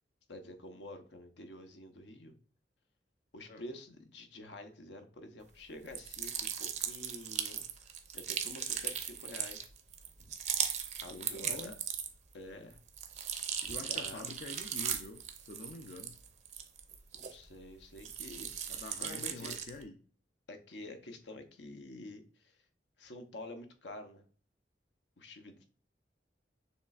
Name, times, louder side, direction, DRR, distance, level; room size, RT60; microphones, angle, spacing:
voice 1, 0.3-2.3 3.3-6.3 6.6-9.7 11.0-11.7 12.3-12.8 13.6-14.2 17.1-18.7 19.0-19.6 20.5-22.5 23.0-24.2 25.2-25.6, left 1 dB, 80° left, 7 dB, 0.8 m, -48 dB
sound 1, 5.9-12.3 12.7-17.6 18.0-19.8, right 8 dB, 40° right, 0.5 m, -38 dB
voice 2, 11.1-11.7 13.7-16.2 18.7-19.9, left 3 dB, 45° left, 5 dB, 0.4 m, -47 dB
6.8 x 3.1 x 2.3 m, 0.43 s
head